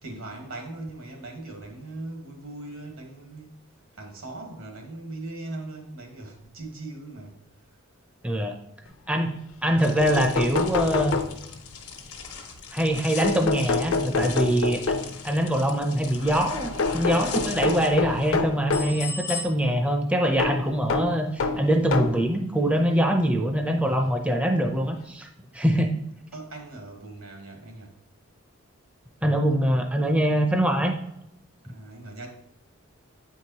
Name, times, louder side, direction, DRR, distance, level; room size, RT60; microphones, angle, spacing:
voice 1, 0.0-7.4 26.3-27.9 31.7-32.3, right 2 dB, 75° right, 1.4 m, -39 dB
voice 2, 8.2-8.6 9.1-11.2 12.7-14.8 15.2-25.3 25.5-25.9 29.2-30.9, equal, 5° right, 0.4 m, -23 dB
sound 1, 9.7-9.8 10.0-11.8 13.2-15.3 16.8-19.0 20.4-22.3 23.1-23.2 24.6-24.7 25.0-25.1, left 4 dB, 65° left, 0.5 m, -27 dB
sound 2, 9.8-19.4, left 5 dB, 90° left, 1.1 m, -38 dB
8.4 x 4.6 x 2.8 m
head